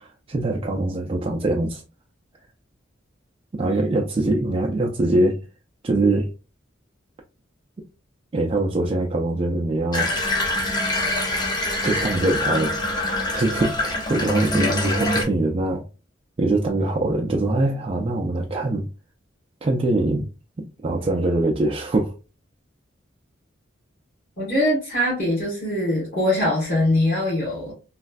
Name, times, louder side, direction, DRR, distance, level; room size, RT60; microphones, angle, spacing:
voice 1, 0.0-1.8 3.5-5.4 5.8-6.3 8.3-10.1 11.8-12.8 13.3-15.8 16.4-18.8 19.6-20.3 20.8-22.1, right 2 dB, 30° right, 0.3 m, -23 dB
Water tap faucet / Bathtub (filling or washing), 9.9-15.2, left 1 dB, 25° left, 0.6 m, -24 dB
voice 2, 24.4-27.7, left 1 dB, 50° left, 1.4 m, -22 dB
3.1 x 2.3 x 2.4 m
head